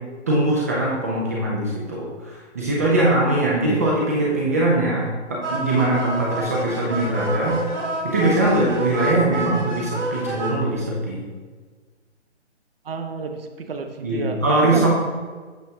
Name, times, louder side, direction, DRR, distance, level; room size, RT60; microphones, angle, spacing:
voice 1, 0.3-7.6 8.0-11.2 14.0-14.9, right 1 dB, 15° right, -4 dB, 0.5 m, -21 dB
sound 1, 5.4-10.5, right 2 dB, 85° right, 2.2 m, -28 dB
voice 2, 12.8-14.9, right 4 dB, 55° right, 5 dB, 0.9 m, -30 dB
8.2 x 6.1 x 2.7 m, 1.5 s
figure-of-eight pair, 135°, 35 cm